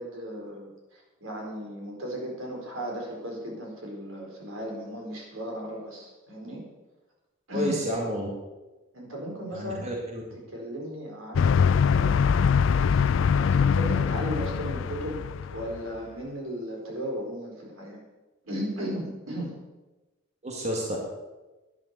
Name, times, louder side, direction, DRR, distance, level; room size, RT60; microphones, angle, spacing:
voice 1, 0.0-6.6 7.5-7.8 8.9-9.8 10.5-15.2 15.5-18.0 18.4-19.5, equal, 85° right, 0 dB, 4.6 m, -36 dB
voice 2, 7.5-8.3 9.5-10.2 20.4-21.0, equal, 30° right, -2 dB, 2.2 m, -30 dB
sound 1, 11.4-16.0, left 6 dB, 70° left, 0.4 m, -23 dB
11.5 x 11.0 x 6.8 m, 1.1 s
head